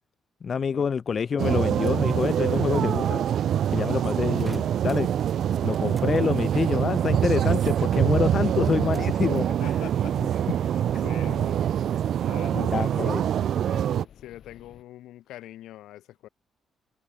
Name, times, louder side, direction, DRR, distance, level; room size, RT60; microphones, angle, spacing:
voice 1, 0.4-3.2 3.7-5.1 5.6-9.5 10.9-11.0 12.5-13.2, left 6 dB, 45° left, 0.5 m, -27 dB
sound 1, 1.4-14.0, right 10 dB, 65° right, 0.3 m, -25 dB
voice 2, 3.8-4.1 9.5-10.2 10.7-11.7 12.2-16.3, left 14 dB, 85° left, 4.0 m, -44 dB
sound 2, 4.4-6.1 6.4-8.1 8.4-9.2 9.7-10.2, right 2 dB, 10° right, 1.9 m, -51 dB
sound 3, 5.6-14.8, left 9 dB, 65° left, 2.4 m, -53 dB
cardioid pair, 90°, 0 cm